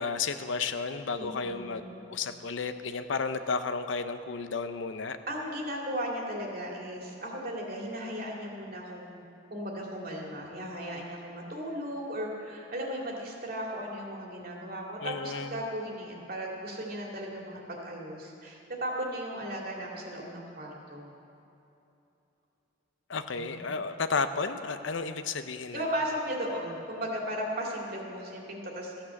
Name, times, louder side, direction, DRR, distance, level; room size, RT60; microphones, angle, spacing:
voice 1, 0.0-5.2 15.0-15.6 23.1-25.8, left 4 dB, 90° left, 10 dB, 0.7 m, -32 dB
voice 2, 1.2-1.9 5.3-9.2 9.5-21.1 23.3-23.6 25.7-28.9, equal, 55° right, -1 dB, 2.4 m, -36 dB
14.5 x 8.8 x 7.0 m, 2.9 s
head